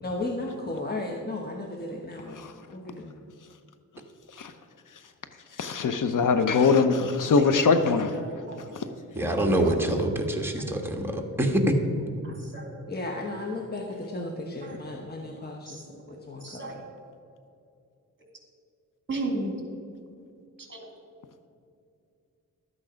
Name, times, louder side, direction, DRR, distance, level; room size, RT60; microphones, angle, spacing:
voice 1, 0.0-2.4 2.7-3.2 12.9-16.7, left 2 dB, 30° left, 1 dB, 1.0 m, -35 dB
voice 2, 5.6-8.1, left 4 dB, 65° left, 9 dB, 0.8 m, -22 dB
voice 3, 8.1-8.6 9.2-9.3 9.6-9.8 12.2-12.8 14.6-14.8 15.7-15.9 16.4-16.7 19.1-19.5 20.6-20.9, right 2 dB, 35° right, 2 dB, 2.6 m, -35 dB
voice 4, 9.1-11.8, right 1 dB, 5° right, 1 dB, 1.4 m, -25 dB
12.5 x 8.6 x 5.1 m, 2.5 s
wide cardioid pair, 100°, 34 cm